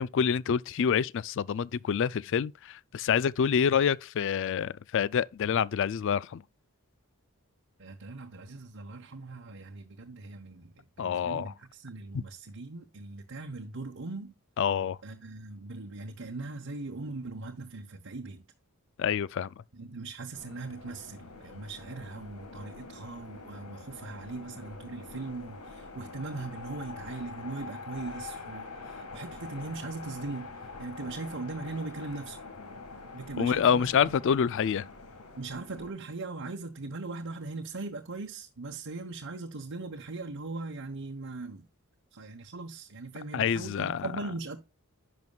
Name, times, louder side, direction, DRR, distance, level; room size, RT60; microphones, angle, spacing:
voice 1, 0.0-6.4 11.0-11.5 12.1-12.2 14.6-15.0 19.0-19.5 33.4-34.9 43.3-44.1, left 7 dB, 55° left, 0.3 m, -27 dB
voice 2, 7.8-14.3 15.0-18.4 19.7-30.5 30.8-32.4 33.1-34.2 35.4-41.6 42.1-44.6, right 3 dB, 60° right, 1.0 m, -40 dB
sound 1, 20.3-35.9, left 3 dB, 85° left, 1.7 m, -45 dB
10.5 x 6.1 x 2.3 m
head